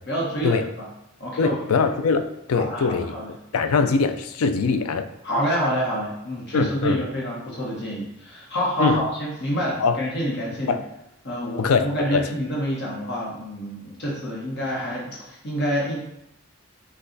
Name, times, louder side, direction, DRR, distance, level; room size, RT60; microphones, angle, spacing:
voice 1, 0.1-0.9 1.2-1.6 2.5-3.3 5.2-10.8 11.2-16.0, equal, 50° left, -4 dB, 1.1 m, -27 dB
voice 2, 1.4-3.1 3.5-5.1 6.5-7.0 8.8-9.0 9.8-10.0 10.6-10.8 11.6-12.2, left 5 dB, 80° left, 9 dB, 0.4 m, -22 dB
5.3 x 2.4 x 3.9 m, 0.84 s
head